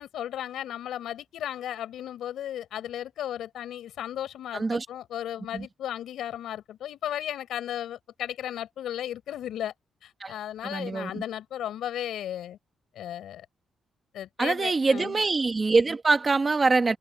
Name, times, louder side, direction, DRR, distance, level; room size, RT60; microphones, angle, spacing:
voice 1, 0.0-9.7 10.0-12.6 12.9-13.5 14.1-15.2, left 11 dB, 90° left, 4.8 m, -35 dB
voice 2, 4.5-4.8 5.5-5.7 10.2-10.3 10.6-11.2 14.4-17.0, right 3 dB, 25° right, 1.5 m, -24 dB
wide cardioid pair, 160°, 0 cm